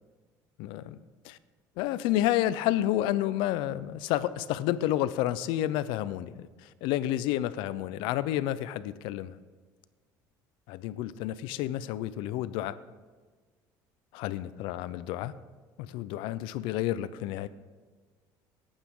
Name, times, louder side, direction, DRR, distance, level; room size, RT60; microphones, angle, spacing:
voice 1, 0.6-1.0 1.2-1.4 1.8-9.4 10.7-12.8 14.1-15.3 15.8-17.5, left 13 dB, 80° left, 16 dB, 0.6 m, -30 dB
18.0 x 8.8 x 3.7 m, 1.4 s
cardioid pair, 145°, 8 cm